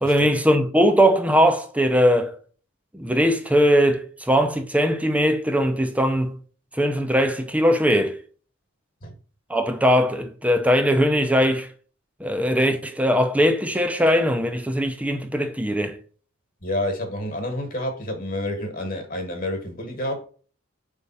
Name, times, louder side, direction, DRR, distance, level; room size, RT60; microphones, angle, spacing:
voice 1, 0.0-2.4 2.9-6.3 6.8-8.2 9.5-11.7 12.2-16.0, equal, 5° right, 0.6 m, -20 dB
voice 2, 16.6-20.2, left 1 dB, 40° left, 1.5 m, -29 dB
5.2 x 3.6 x 5.6 m
head